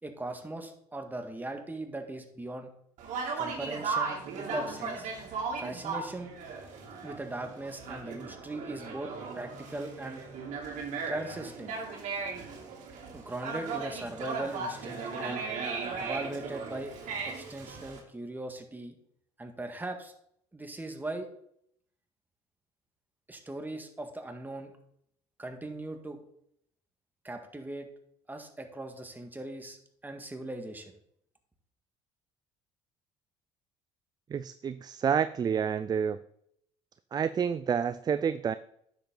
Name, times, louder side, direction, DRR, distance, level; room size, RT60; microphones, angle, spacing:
voice 1, 0.0-2.7 3.4-5.1 5.6-6.3 7.0-10.2 11.1-11.8 13.1-15.4 16.0-16.9 17.2-18.9 19.4-20.1 20.5-21.3 23.3-24.7 25.4-26.2 27.2-27.9 28.3-29.8 30.0-30.9, right 2 dB, 15° right, 5 dB, 1.8 m, -39 dB
Conversation, 3.0-18.0, right 4 dB, 60° right, 2.7 m, -37 dB
voice 2, 34.3-36.2 37.1-38.5, right 7 dB, 30° right, 13 dB, 0.4 m, -29 dB
10.0 x 7.3 x 3.9 m, 0.71 s
hypercardioid pair, 70°, 14 cm